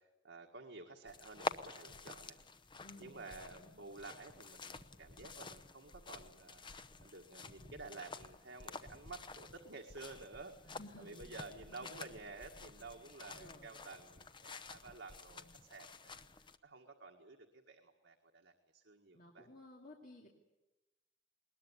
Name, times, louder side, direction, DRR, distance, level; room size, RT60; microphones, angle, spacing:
voice 1, 0.0-2.4 3.0-6.6 7.0-16.2 16.6-19.5, right 3 dB, 80° right, 2 dB, 1.8 m, -52 dB
sound 1, 1.1-16.6, left 3 dB, 25° left, 0.8 m, -49 dB
voice 2, 2.8-3.2 3.5-3.7 10.6-11.3 11.7-12.0 13.3-13.7 15.3-15.5 19.1-20.3, left 1 dB, 45° left, -1 dB, 2.5 m, -56 dB
21.0 x 20.5 x 9.8 m, 1.0 s
head